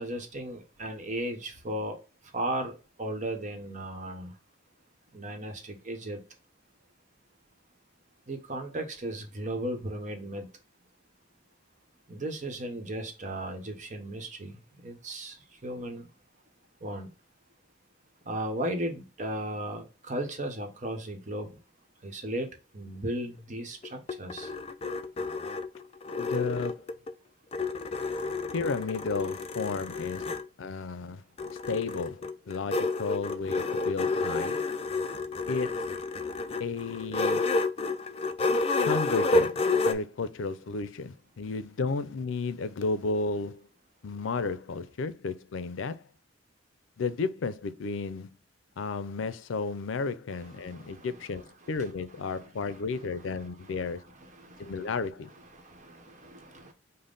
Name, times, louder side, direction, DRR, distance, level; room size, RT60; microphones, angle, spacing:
voice 1, 0.0-2.0 2.3-2.7 3.0-4.3 5.1-6.2 8.3-10.5 12.1-14.5 14.8-15.3 15.6-16.1 16.8-17.1 18.3-21.5 22.0-22.5 22.7-24.5 50.4-51.1 51.4-51.5 51.7-51.9 52.3-53.1 53.4-53.9 54.2-54.9 55.5-56.7, right 1 dB, 40° right, 0.9 m, -36 dB
sound 1, 23.8-27.1 27.5-30.5 31.4-39.9, left 3 dB, 30° left, 0.4 m, -30 dB
voice 2, 26.2-26.9 28.5-30.3 30.6-31.2 31.7-34.6 35.5-35.9 36.6-37.5 38.8-39.6 39.8-43.7 44.0-46.0 47.0-48.4 48.8-54.0 54.6-55.3, left 4 dB, 90° left, 0.5 m, -33 dB
5.4 x 2.1 x 3.8 m
head